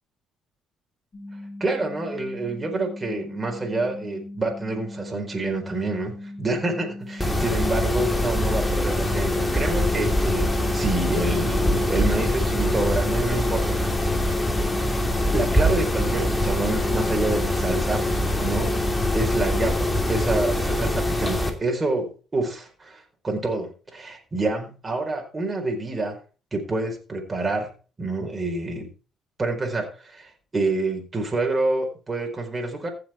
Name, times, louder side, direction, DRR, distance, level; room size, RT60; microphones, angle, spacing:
sound 1, 1.1-19.7, left 1 dB, 40° left, 5.0 m, -39 dB
voice 1, 1.6-13.8 14.1-14.5 15.3-18.1 18.4-18.7 19.1-26.2 26.5-27.7 28.0-28.9 29.4-32.9, right 2 dB, 25° right, 2 dB, 4.3 m, -27 dB
Mechanisms, 7.2-21.5, left 1 dB, 15° left, 2.7 m, -23 dB
15.5 x 6.8 x 4.5 m, 0.35 s
supercardioid pair, 70°, 0 cm